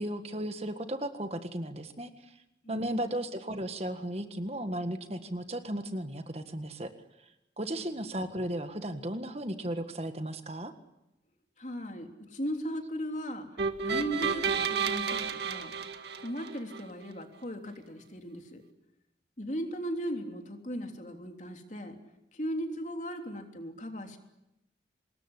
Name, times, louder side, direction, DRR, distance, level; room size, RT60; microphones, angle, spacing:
voice 1, 0.0-2.1 2.7-6.9 7.6-10.7, right 1 dB, 35° right, 8 dB, 1.7 m, -35 dB
voice 2, 2.6-3.0 11.6-13.4 13.8-15.8 16.2-18.6 19.4-22.0 22.3-24.2, equal, 40° left, 4 dB, 3.3 m, -37 dB
sound 1, 13.6-16.8, right 6 dB, 70° right, 2.0 m, -31 dB
25.5 x 21.0 x 9.9 m, 0.89 s
head